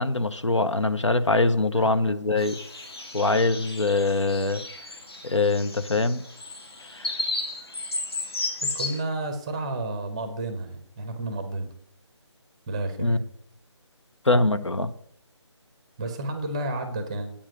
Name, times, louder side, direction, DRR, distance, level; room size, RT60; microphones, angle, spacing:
voice 1, 0.0-2.6 3.1-4.6 5.2-6.2 6.9-7.1 13.0-13.2 14.2-14.9, left 2 dB, 75° left, 11 dB, 0.9 m, -23 dB
sound 1, 2.4-9.0, left 2 dB, 55° left, 2.5 m, -34 dB
voice 2, 8.6-11.7 12.7-13.2 16.0-17.3, right 2 dB, 10° right, 8 dB, 0.7 m, -31 dB
8.7 x 7.3 x 6.4 m, 0.69 s
figure-of-eight pair, 155°, 15 cm